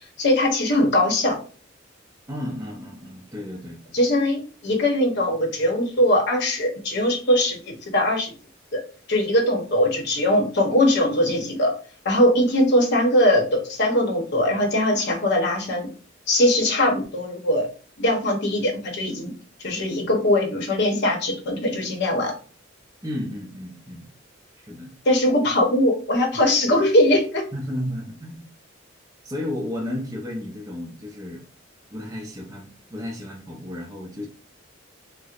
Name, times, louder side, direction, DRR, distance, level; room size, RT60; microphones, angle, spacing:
voice 1, 0.2-1.4 3.9-8.3 8.7-8.8 9.1-11.7 12.0-15.9 16.3-17.7 18.0-19.3 19.6-22.3 25.0-27.4, left 1 dB, 60° left, 2 dB, 0.9 m, -21 dB
voice 2, 2.3-3.8 23.0-24.1 24.6-24.9 27.5-28.5 29.2-31.4 31.9-34.3, left 1 dB, 15° right, -2 dB, 0.6 m, -33 dB
4.4 x 2.1 x 2.4 m, 0.40 s
head